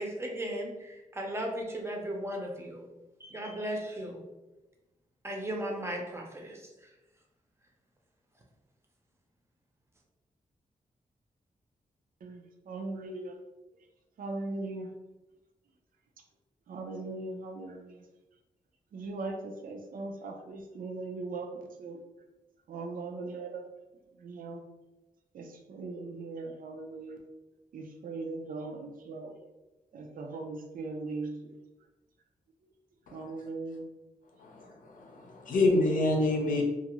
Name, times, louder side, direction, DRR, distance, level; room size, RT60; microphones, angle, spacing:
voice 1, 0.0-2.9 3.2-4.3 5.2-6.9, right 1 dB, 15° right, 0 dB, 0.6 m, -36 dB
voice 2, 12.2-13.4 14.2-14.9 16.7-18.0 18.9-22.0 22.7-23.6 24.2-24.6 25.3-27.2 27.7-29.3 29.9-31.6 33.1-33.9, right 3 dB, 75° right, 2 dB, 0.4 m, -39 dB
voice 3, 34.4-36.6, left 2 dB, 70° left, 1 dB, 0.6 m, -27 dB
2.5 x 2.4 x 2.9 m, 1.0 s
wide cardioid pair, 115°, 15 cm